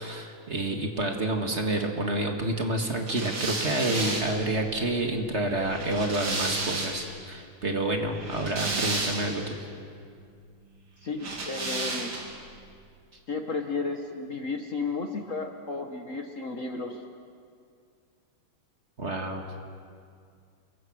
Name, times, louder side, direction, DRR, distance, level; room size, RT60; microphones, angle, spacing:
voice 1, 0.0-9.5 19.0-19.4, right 1 dB, 35° right, 3 dB, 2.0 m, -29 dB
sound 1, 3.1-7.2 8.1-9.5 11.2-12.4, right 3 dB, 65° right, 3.5 m, -32 dB
voice 2, 11.0-12.1 13.3-17.0, left 4 dB, 45° left, 5 dB, 1.4 m, -33 dB
28.5 x 22.5 x 6.3 m, 2.3 s
omnidirectional pair, 2.2 m